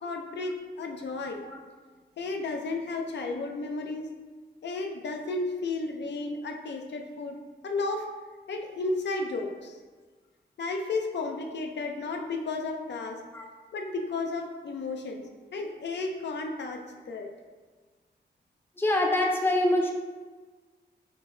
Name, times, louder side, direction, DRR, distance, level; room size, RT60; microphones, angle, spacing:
voice 1, 0.0-1.4 2.2-4.1 4.6-7.4 7.6-8.1 8.5-9.8 10.6-13.2 13.7-15.2 15.5-17.3, left 3 dB, 80° left, 3 dB, 0.5 m, -33 dB
voice 2, 18.8-19.9, left 1 dB, 10° left, 1 dB, 0.4 m, -25 dB
5.4 x 2.1 x 3.7 m, 1.4 s
wide cardioid pair, 140°, 18 cm